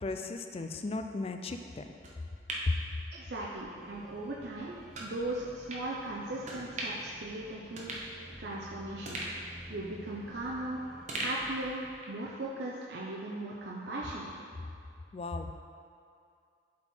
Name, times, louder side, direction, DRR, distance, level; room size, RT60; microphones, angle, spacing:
voice 1, 0.0-1.8 15.1-15.6, left 3 dB, 35° left, 6 dB, 0.4 m, -37 dB
sound 1, 2.0-3.6 4.0-4.1 4.9-5.1 5.7-5.9 6.4-7.1 7.4-7.5 7.8-8.6 9.0-10.6 11.1-12.2 12.6-12.7, right 1 dB, 40° right, 1.0 m, -40 dB
voice 2, 3.1-9.2 9.7-10.8 11.1-11.8 12.1-14.4, right 1 dB, 70° right, -5 dB, 0.7 m, -38 dB
sound 2, 3.7-11.1, equal, 5° right, 0.8 m, -52 dB
7.2 x 4.5 x 4.4 m, 2.5 s
head